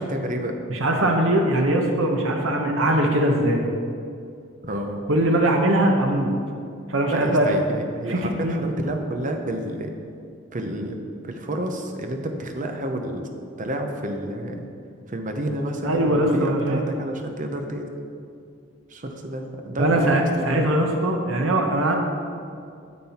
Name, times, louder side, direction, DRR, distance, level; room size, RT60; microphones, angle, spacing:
voice 1, 0.0-0.5 4.6-5.0 7.1-9.9 10.5-11.0 11.2-13.3 13.6-14.7 15.1-17.9 18.9-20.7, right 1 dB, 40° right, 4 dB, 0.8 m, -30 dB
voice 2, 0.7-3.6 5.1-6.3 6.9-7.5 8.1-8.5 15.8-16.8 19.8-22.0, right 1 dB, 70° right, 2 dB, 1.0 m, -21 dB
9.4 x 7.5 x 4.3 m, 2.4 s
head